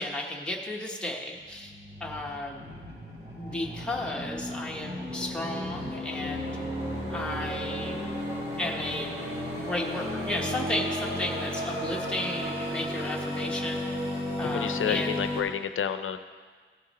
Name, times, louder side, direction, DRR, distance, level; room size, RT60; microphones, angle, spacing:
voice 1, 0.0-1.7 2.0-2.7 3.3-6.6 7.1-8.0 8.6-9.1 9.5-13.9 14.4-15.2, left 1 dB, 5° left, -2 dB, 1.1 m, -34 dB
sound 1, 1.3-15.4, equal, 30° right, 3.1 m, -34 dB
voice 2, 14.4-16.2, left 7 dB, 75° left, 10 dB, 0.6 m, -30 dB
16.0 x 6.7 x 4.2 m, 1.6 s
wide cardioid pair, 175°, 21 cm